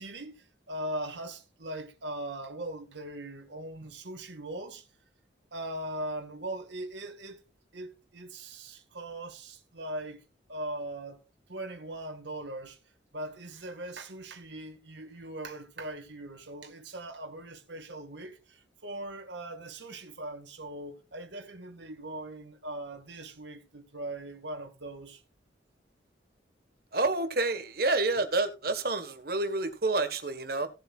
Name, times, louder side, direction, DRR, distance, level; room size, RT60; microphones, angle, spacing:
voice 1, 0.0-4.9 5.5-7.4 7.7-10.2 10.5-11.2 11.5-12.8 13.1-25.2, right 1 dB, 70° right, 2.0 m, -40 dB
voice 2, 26.9-30.7, right 2 dB, 55° right, 1.6 m, -28 dB
17.5 x 7.8 x 2.5 m
head